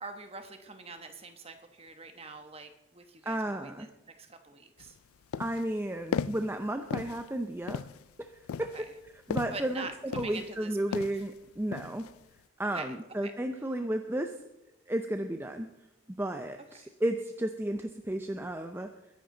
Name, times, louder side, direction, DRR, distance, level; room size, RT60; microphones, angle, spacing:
voice 1, 0.0-3.9 4.2-4.9 8.7-8.8 9.5-11.1 12.7-12.9 13.2-13.3 16.8-16.9, right 3 dB, 30° right, 7 dB, 1.1 m, -44 dB
voice 2, 3.3-3.9 5.4-7.8 8.2-8.3 8.6-8.7 9.3-12.1 12.6-14.3 14.9-15.7 16.2-18.9, right 1 dB, 10° right, 6 dB, 0.5 m, -33 dB
sound 1, 4.8-4.9 5.3-5.7 6.1-6.5 6.9-7.3 7.7-8.0 8.5-9.7 10.1-10.6 10.9-11.3 11.7-12.1, left 6 dB, 85° left, 0.4 m, -35 dB
22.0 x 10.5 x 3.9 m, 0.90 s
head